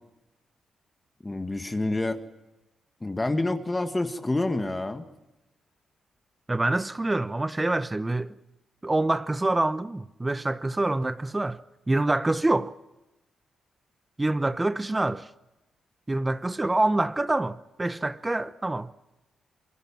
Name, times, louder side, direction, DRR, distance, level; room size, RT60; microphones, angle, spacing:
voice 1, 1.2-2.2 3.0-5.0, left 2 dB, 20° left, 1.9 m, -28 dB
voice 2, 6.5-8.3 8.8-11.6 11.9-12.7 14.2-15.3 16.1-18.9, right 2 dB, 20° right, 0.9 m, -26 dB
26.0 x 22.5 x 7.4 m
cardioid pair, 70°, 0 cm